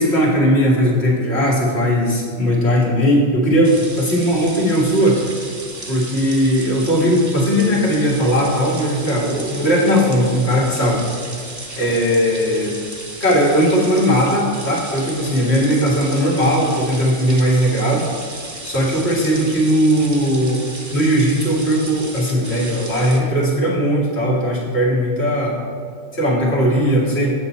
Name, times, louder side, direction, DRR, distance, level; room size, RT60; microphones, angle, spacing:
voice 1, 0.0-5.2 5.9-11.0 11.8-12.7 13.2-18.1 18.6-20.6 20.9-25.6 26.1-27.3, equal, 60° left, -4 dB, 2.0 m, -18 dB
sound 1, 3.6-23.2, right 2 dB, 20° right, 0.7 m, -34 dB
8.3 x 7.3 x 4.2 m, 2.1 s
omnidirectional pair, 1.2 m